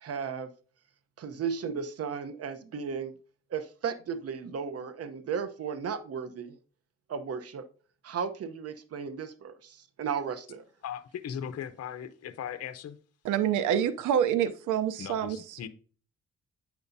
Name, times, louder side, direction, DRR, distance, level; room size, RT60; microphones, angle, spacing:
voice 1, 0.0-0.5 1.2-3.1 3.5-6.6 7.1-7.7 8.0-10.6, right 6 dB, 50° right, 12 dB, 0.9 m, -35 dB
voice 2, 10.8-12.9 15.0-15.7, left 8 dB, 55° left, 11 dB, 0.8 m, -38 dB
voice 3, 13.3-15.7, right 9 dB, 80° right, 11 dB, 0.7 m, -27 dB
9.0 x 6.9 x 2.7 m, 0.41 s
cardioid pair, 90°, 30 cm